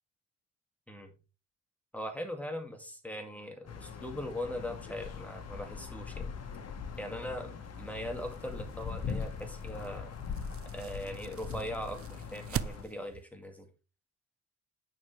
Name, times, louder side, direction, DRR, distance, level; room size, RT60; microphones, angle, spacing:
voice 1, 1.9-6.3 7.0-10.2 10.7-13.7, left 1 dB, 5° left, 5 dB, 2.2 m, -40 dB
sound 1, 3.7-12.8, left 6 dB, 55° left, 1.6 m, -41 dB
sound 2, 7.6-13.2, right 10 dB, 50° right, 0.6 m, -44 dB
8.9 x 6.3 x 3.3 m, 0.31 s
cardioid pair, 90°, 30 cm